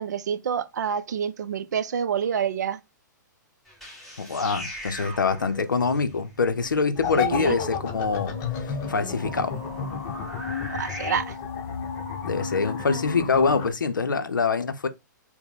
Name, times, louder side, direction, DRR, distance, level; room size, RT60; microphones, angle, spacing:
voice 1, 0.0-2.8 7.1-7.6 10.7-11.3, right 7 dB, 60° right, 0.5 m, -28 dB
sound 1, 3.7-11.1, equal, ahead, 1.5 m, -41 dB
voice 2, 4.2-8.3 8.6-9.5 12.2-14.9, left 4 dB, 80° left, 0.6 m, -25 dB
sound 2, 7.0-13.7, left 6 dB, 30° left, 0.9 m, -31 dB
4.4 x 2.1 x 3.6 m
figure-of-eight pair, 115°, 10 cm